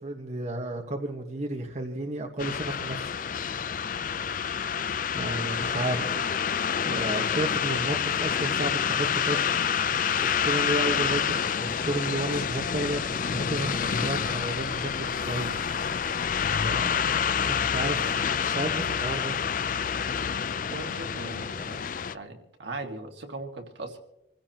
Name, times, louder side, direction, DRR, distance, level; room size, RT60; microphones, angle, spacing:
voice 1, 0.0-3.1 5.1-6.1 6.8-9.5 10.2-15.7 16.6-18.0 18.3-19.3, right 2 dB, 40° right, 2 dB, 1.4 m, -32 dB
sound 1, 2.4-22.1, left 7 dB, 45° left, 0.4 m, -28 dB
voice 2, 20.7-21.8 22.1-24.0, right 2 dB, 70° right, 3 dB, 2.0 m, -39 dB
26.5 x 16.0 x 3.0 m, 0.89 s
head